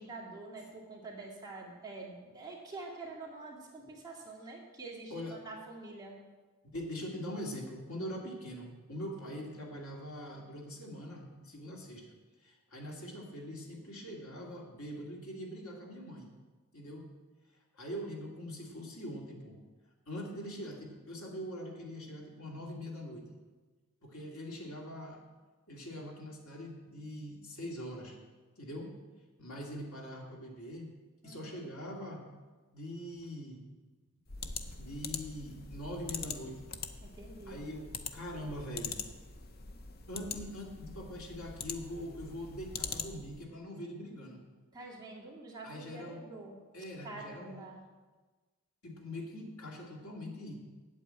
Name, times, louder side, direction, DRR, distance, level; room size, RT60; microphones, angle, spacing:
voice 1, 0.0-6.1 9.3-9.4 31.2-31.7 37.0-37.6 44.7-46.6 47.0-47.9, right 3 dB, 15° right, -4 dB, 2.1 m, -46 dB
voice 2, 6.6-12.1 12.4-16.3 16.7-17.1 17.7-19.6 20.1-23.3 24.0-25.2 25.7-28.2 28.6-28.9 29.4-30.9 31.2-32.2 32.7-33.7 34.8-36.6 37.5-39.0 40.1-44.4 45.6-46.2 46.7-47.7 48.8-50.5, equal, 80° left, -1 dB, 2.4 m, -43 dB
sound 1, 34.3-43.4, left 5 dB, 45° left, 0.7 m, -43 dB
8.4 x 8.0 x 8.7 m, 1.3 s
head